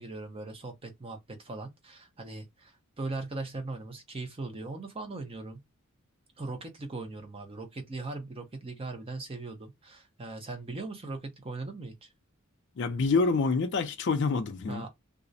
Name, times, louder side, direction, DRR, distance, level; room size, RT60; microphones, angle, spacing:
voice 1, 0.0-5.6 6.4-12.1 14.7-14.9, right 3 dB, 25° right, 0.6 m, -39 dB
voice 2, 12.8-14.8, left 4 dB, 55° left, 0.4 m, -27 dB
2.4 x 2.0 x 2.6 m
head